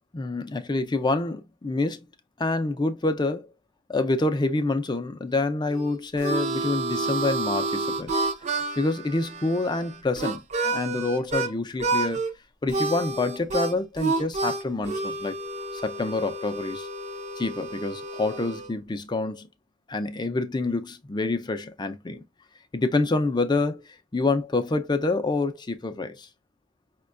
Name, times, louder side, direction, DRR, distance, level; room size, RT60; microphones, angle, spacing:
voice 1, 0.1-2.0 2.4-3.5 3.9-8.2 8.8-12.2 12.6-15.3 15.7-16.9 17.4-19.5 19.9-22.3 22.7-23.8 24.1-26.3, left 2 dB, 20° left, 0.4 m, -27 dB
Harmonica, 5.7-11.5 11.8-12.3 12.7-18.7, right 3 dB, 35° right, 0.5 m, -29 dB
5.2 x 2.2 x 2.4 m
head